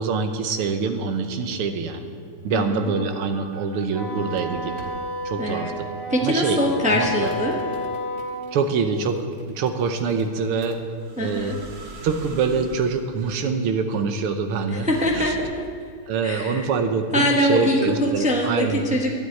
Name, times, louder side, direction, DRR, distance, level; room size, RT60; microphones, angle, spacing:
voice 1, 0.0-2.1 2.4-4.9 5.3-5.9 6.2-6.6 6.9-7.3 8.5-10.8 11.2-11.5 12.0-14.9 15.2-15.3 16.1-18.9, right 5 dB, 85° right, 7 dB, 1.8 m, -25 dB
sound 1, 2.1-3.8 4.3-5.0 5.5-5.6 6.1-6.3 6.7-15.7, right 3 dB, 45° right, 1.9 m, -43 dB
voice 2, 2.5-2.9 5.4-5.8 6.1-7.6 11.2-11.6 14.7-15.7 16.2-16.7 17.1-19.2, left 1 dB, 10° right, -1 dB, 0.4 m, -23 dB
Wind instrument woodwind instrument, 3.9-8.5, equal, 10° left, 2.1 m, -31 dB
12.5 x 8.0 x 9.2 m, 2.1 s
omnidirectional pair, 2.4 m